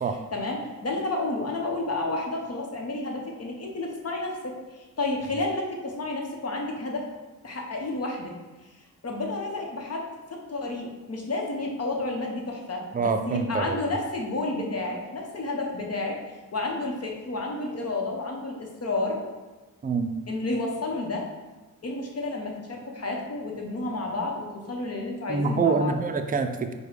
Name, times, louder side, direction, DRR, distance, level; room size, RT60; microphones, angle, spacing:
voice 1, 0.3-7.1 7.4-8.3 9.0-16.2 16.5-19.2 20.3-21.3 21.8-26.0, left 2 dB, 45° left, 1 dB, 0.9 m, -31 dB
voice 2, 12.9-13.8 19.8-20.2 25.3-26.7, right 4 dB, 25° right, 7 dB, 0.4 m, -26 dB
4.8 x 2.3 x 4.8 m, 1.2 s
cardioid pair, 75°, 34 cm